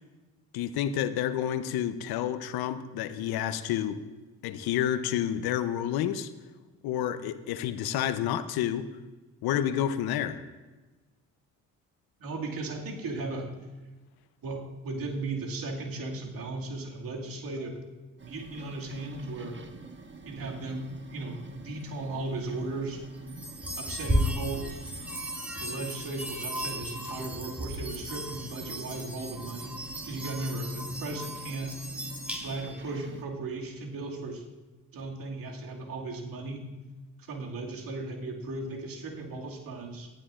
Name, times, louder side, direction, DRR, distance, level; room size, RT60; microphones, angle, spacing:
voice 1, 0.5-4.0 4.4-6.3 6.8-8.9 9.4-10.4, left 10 dB, 70° left, 12 dB, 0.8 m, -29 dB
voice 2, 12.2-13.5 14.4-17.8 18.2-19.6 20.2-23.0 23.8-24.7 25.6-31.8 32.4-34.4 34.9-36.7 37.2-40.1, right 2 dB, 60° right, -1 dB, 2.3 m, -36 dB
sound 1, 18.2-33.2, right 3 dB, 30° right, 1.4 m, -46 dB
sound 2, 23.3-32.8, equal, 5° right, 3.2 m, -35 dB
18.5 x 12.0 x 2.5 m, 1.2 s
hypercardioid pair, 55°, 38 cm